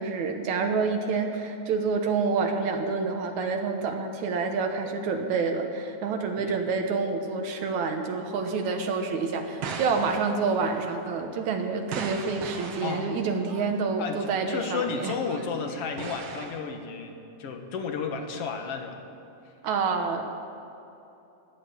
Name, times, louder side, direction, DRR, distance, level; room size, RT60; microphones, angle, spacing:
voice 1, 0.0-15.2 19.6-20.2, right 4 dB, 75° right, 4 dB, 2.4 m, -28 dB
sound 1, 9.6-13.7 14.6-16.6, right 5 dB, 60° right, 2.1 m, -39 dB
voice 2, 12.8-13.1 14.0-19.0, left 5 dB, 60° left, 5 dB, 2.0 m, -33 dB
16.0 x 11.0 x 7.2 m, 2.9 s
omnidirectional pair, 3.4 m